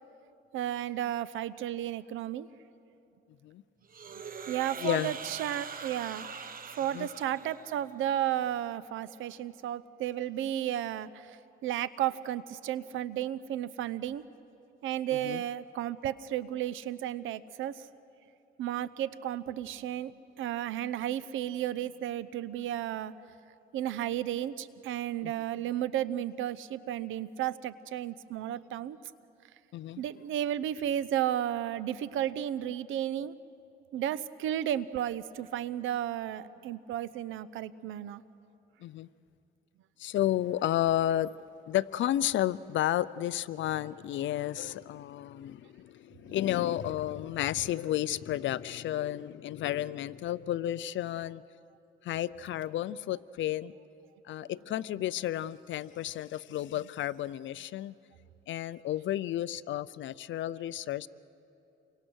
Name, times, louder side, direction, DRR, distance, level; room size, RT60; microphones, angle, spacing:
voice 1, 0.5-2.5 4.5-6.3 6.8-14.2 14.8-17.9 18.6-23.1 23.7-29.0 30.0-33.3 33.9-38.2, right 11 dB, 85° right, 16 dB, 0.8 m, -33 dB
sound 1, 3.9-8.0, right 6 dB, 45° right, 1.2 m, -43 dB
voice 2, 4.8-5.1 6.9-7.1 15.1-15.4 25.2-25.3 29.7-30.0 38.8-39.1 40.0-41.3 41.7-51.4 52.0-53.7 54.3-57.9 58.5-61.1, left 12 dB, 70° left, 18 dB, 0.6 m, -32 dB
28.5 x 24.0 x 6.4 m, 2.8 s
cardioid pair, 90°, 20 cm